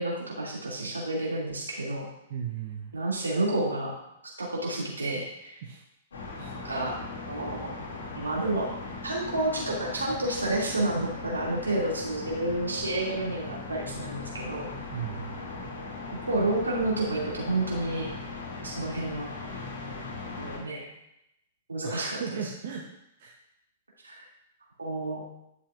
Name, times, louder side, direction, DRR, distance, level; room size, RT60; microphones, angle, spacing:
voice 1, 0.0-2.1 2.9-3.9 4.4-5.6 6.6-6.9 7.3-7.7 8.2-8.7 9.0-14.7 16.3-18.1 18.6-19.3 20.4-20.8 21.7-22.4 24.0-24.3 24.8-25.2, right 2 dB, 80° right, -4 dB, 2.6 m, -30 dB
voice 2, 2.3-2.9 5.6-5.8 6.4-6.5 14.9-15.5 21.8-22.9 23.2-23.3, right 7 dB, 50° right, 1 dB, 0.9 m, -36 dB
sound 1, 6.1-20.6, left 3 dB, 65° left, 2.5 m, -39 dB
11.0 x 7.0 x 2.5 m, 0.83 s
figure-of-eight pair, 105°, 0 cm